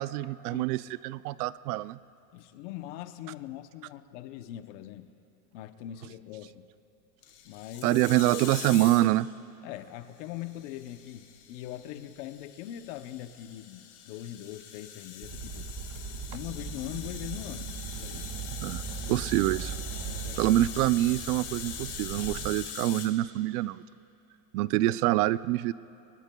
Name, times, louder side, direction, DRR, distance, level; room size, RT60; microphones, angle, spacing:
voice 1, 0.0-2.0 7.8-9.3 18.6-18.8 19.1-19.7 20.4-23.8 24.5-25.7, right 16 dB, 70° right, 17 dB, 0.5 m, -26 dB
voice 2, 2.3-5.1 5.5-6.7 7.4-8.0 9.6-15.7 16.3-17.7 18.0-18.3 19.0-19.2 20.0-20.6, left 13 dB, 50° left, 10 dB, 0.8 m, -41 dB
sound 1, 7.2-9.2 10.3-23.1, left 9 dB, 75° left, 2.6 m, -43 dB
sound 2, 15.2-22.5, right 7 dB, 40° right, 1.7 m, -39 dB
25.5 x 21.5 x 2.3 m, 2.9 s
supercardioid pair, 160°, 48 cm